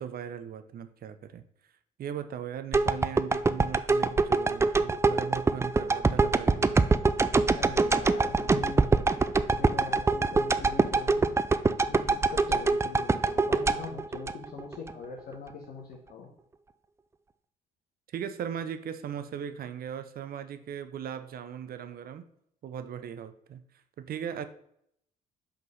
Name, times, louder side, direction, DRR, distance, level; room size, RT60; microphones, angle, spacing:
voice 1, 0.0-1.4 2.0-6.8 18.1-22.3 22.6-24.4, right 8 dB, 50° right, 10 dB, 0.7 m, -38 dB
sound 1, 2.7-14.9 15.3-15.4, right 3 dB, 15° right, 0.4 m, -24 dB
voice 2, 7.5-8.9 9.5-11.3 11.9-16.3, left 5 dB, 55° left, -2 dB, 1.3 m, -42 dB
5.6 x 3.8 x 5.3 m, 0.72 s
hypercardioid pair, 55°, 19 cm